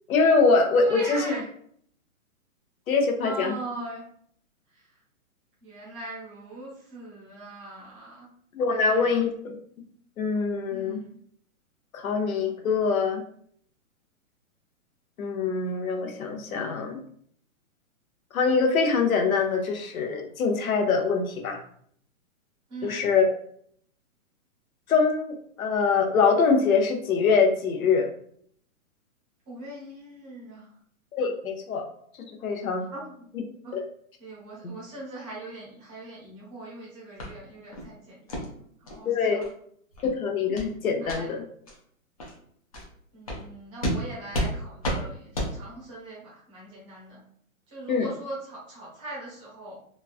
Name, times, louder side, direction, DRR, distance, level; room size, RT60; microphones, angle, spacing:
voice 1, 0.1-1.2 2.9-3.5 8.5-9.3 10.2-11.0 11.9-13.2 15.2-17.0 18.3-21.6 22.8-23.3 24.9-28.1 31.1-31.8 32.4-32.8 33.7-33.8 34.6-34.7 39.1-39.4 40.0-41.4 47.9-48.1, left 4 dB, 80° left, 3 dB, 0.8 m, -24 dB
voice 2, 0.8-1.5 3.2-4.0 4.7-4.9 5.6-8.3 8.7-9.1 10.7-11.2 22.7-23.1 29.5-30.7 32.9-33.1 33.6-33.8 34.2-39.5 41.0-41.3 43.1-47.2 47.7-49.8, right 2 dB, 10° right, -6 dB, 0.6 m, -41 dB
sound 1, 37.2-37.3 37.7-37.9 38.3-38.4 38.9-39.0 39.4-39.5 39.9-40.1 40.5-40.7 41.0-41.2 41.7-41.8 42.2-42.3 42.7-42.9 43.3-43.4 43.8-44.0 44.3-44.5 44.8-45.0 45.3-45.5, equal, 30° left, 0.4 m, -30 dB
3.1 x 2.3 x 2.4 m, 0.64 s
hypercardioid pair, 155°, 42 cm